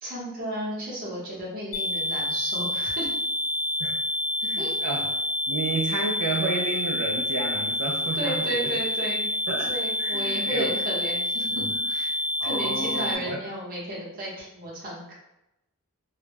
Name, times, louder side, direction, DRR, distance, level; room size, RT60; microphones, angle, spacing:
voice 1, 0.0-3.1 4.6-4.7 8.1-9.2 9.7-12.1 12.4-15.1, right 1 dB, 40° right, -5 dB, 0.9 m, -33 dB
sound 1, 1.7-13.2, left 1 dB, 85° left, 0.5 m, -28 dB
voice 2, 4.5-5.1 5.5-8.7 9.5-9.7 10.0-10.7 11.5-11.7 12.4-13.4, right 3 dB, 80° right, -1 dB, 0.4 m, -31 dB
2.2 x 2.0 x 3.4 m, 0.89 s
head